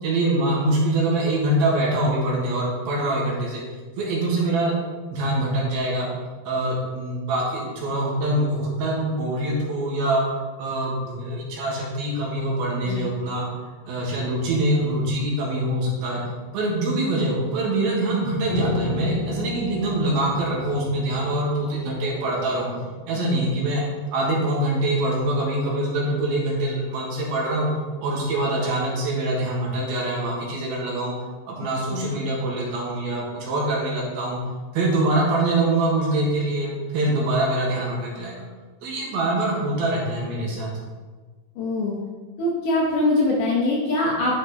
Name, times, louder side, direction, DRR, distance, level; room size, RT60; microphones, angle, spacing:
voice 1, 0.0-3.6 4.0-4.7 5.1-6.1 6.4-10.2 10.6-13.4 13.9-16.2 16.5-22.7 23.1-23.8 24.1-27.7 28.0-31.1 31.5-34.4 34.7-38.4 38.8-40.7, right 1 dB, 70° right, -3 dB, 3.1 m, -24 dB
Piano, 18.5-23.8, left 3 dB, 5° right, 1.1 m, -33 dB
voice 2, 41.6-42.0 42.4-44.4, left 2 dB, 70° left, -3 dB, 2.0 m, -23 dB
10.0 x 5.9 x 2.9 m, 1.4 s
omnidirectional pair, 4.7 m